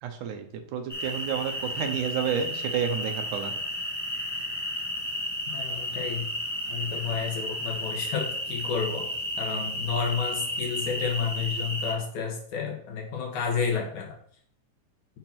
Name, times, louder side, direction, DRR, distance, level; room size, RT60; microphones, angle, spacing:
voice 1, 0.0-0.5 0.7-3.5, right 7 dB, 75° right, 6 dB, 2.3 m, -30 dB
sound 1, 0.9-11.9, left 1 dB, 10° left, 1.0 m, -33 dB
voice 2, 5.5-6.3 6.7-9.1 9.4-14.1, left 6 dB, 70° left, 0 dB, 2.7 m, -31 dB
6.7 x 5.9 x 4.5 m, 0.63 s
omnidirectional pair, 3.7 m